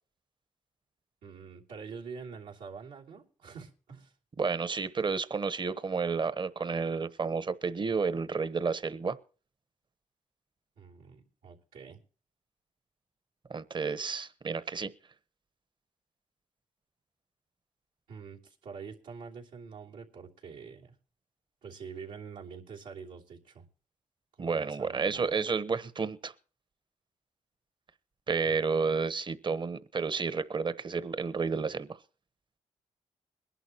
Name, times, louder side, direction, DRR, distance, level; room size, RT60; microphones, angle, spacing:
voice 1, 1.2-4.1 10.8-12.0 18.1-20.9 21.6-23.6 24.4-25.5 28.5-28.6, right 5 dB, 90° right, 3.0 m, -46 dB
voice 2, 4.4-9.2 13.5-14.9 24.4-26.3 28.3-32.0, right 5 dB, 35° right, 1.0 m, -31 dB
21.5 x 11.0 x 2.9 m
cardioid pair, 65°, 13 cm